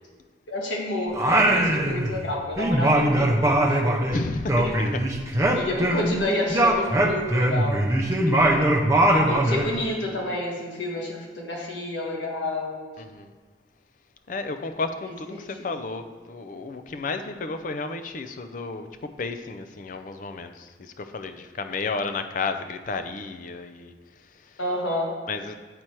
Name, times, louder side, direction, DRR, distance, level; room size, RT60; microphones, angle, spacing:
voice 1, 0.5-4.1 4.6-4.8 5.5-7.8 9.3-12.8 15.1-15.9 24.6-25.2, left 1 dB, 80° left, -2 dB, 1.5 m, -30 dB
Singing, 1.1-2.3 2.6-6.2 6.5-9.7, right 1 dB, 15° right, 0.6 m, -21 dB
voice 2, 4.1-4.6 8.3-8.7 13.1-13.3 14.3-18.9 19.2-23.9 25.3-25.5, left 3 dB, 45° left, 8 dB, 0.4 m, -32 dB
7.6 x 4.3 x 4.6 m, 1.3 s
head